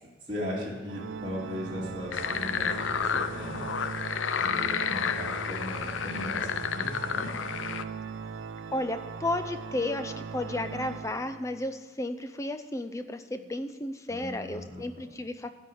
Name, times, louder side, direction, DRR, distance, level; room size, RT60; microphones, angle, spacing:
voice 1, 0.3-3.7 4.4-7.4 14.1-14.8, left 1 dB, 25° right, -6 dB, 2.0 m, -37 dB
Organ, 0.9-11.7, right 5 dB, 80° right, 0.4 m, -39 dB
sound 1, 2.1-7.8, left 7 dB, 90° left, 0.5 m, -31 dB
voice 2, 8.7-15.5, left 1 dB, 15° left, 9 dB, 0.5 m, -33 dB
12.5 x 4.7 x 8.5 m, 1.3 s
head